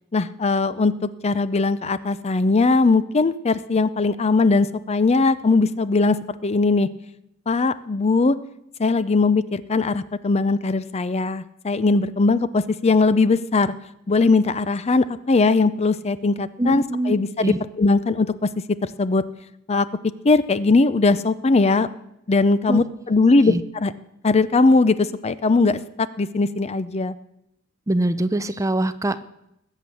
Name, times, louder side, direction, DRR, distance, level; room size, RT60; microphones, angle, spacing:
voice 1, 0.1-6.9 7.5-8.4 8.8-13.7 14.1-18.5 18.8-19.2 19.7-19.9 20.2-21.9 22.3-23.9 24.2-27.1, left 3 dB, 30° left, 15 dB, 0.5 m, -20 dB
voice 2, 16.6-17.1 17.4-17.6 22.7-22.8 23.4-23.6 27.9-29.3, right 1 dB, 15° right, 13 dB, 0.6 m, -23 dB
20.0 x 8.2 x 7.0 m, 0.83 s
head